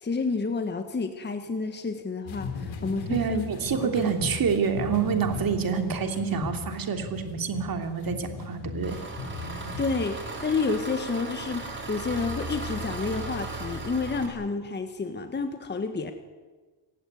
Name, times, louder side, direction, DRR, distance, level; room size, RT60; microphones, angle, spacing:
voice 1, 0.0-3.5 3.9-4.1 9.4-16.1, left 4 dB, 20° left, 7 dB, 1.6 m, -30 dB
sound 1, 2.3-10.0, left 4 dB, 75° left, 3.9 m, -37 dB
voice 2, 3.1-9.0, right 6 dB, 45° right, 6 dB, 3.2 m, -27 dB
Engine, 8.8-14.3, right 2 dB, 25° right, 4.9 m, -36 dB
27.0 x 16.0 x 9.7 m, 1.3 s
cardioid pair, 135°, 47 cm